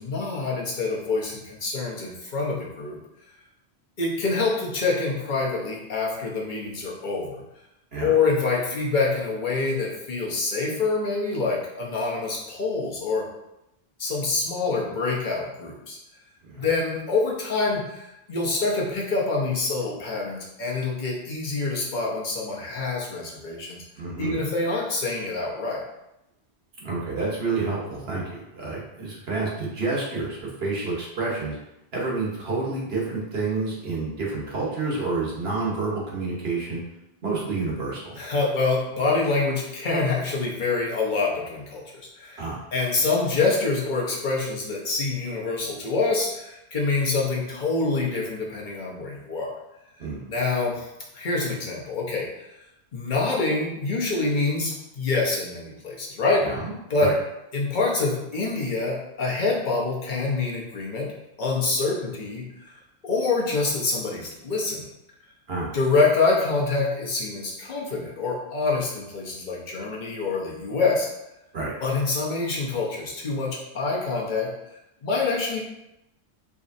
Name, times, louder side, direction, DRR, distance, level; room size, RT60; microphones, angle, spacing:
voice 1, 0.0-3.0 4.0-7.4 8.0-13.3 14.0-16.0 16.6-23.8 24.2-25.8 38.1-49.5 50.3-50.9 51.1-52.5 52.9-56.5 56.9-57.1 57.5-61.1 61.4-62.4 63.0-64.8 65.7-71.1 71.8-74.5 75.0-75.6, left 3 dB, 50° left, -3 dB, 1.0 m, -26 dB
voice 2, 24.0-24.4 26.8-31.6 31.9-36.8 37.2-38.2 42.4-42.6 50.0-50.3 56.4-56.7 57.0-57.1 65.5-65.7 71.5-71.8, right 3 dB, 65° right, -4 dB, 1.4 m, -29 dB
4.9 x 3.0 x 2.6 m, 0.88 s
omnidirectional pair, 1.1 m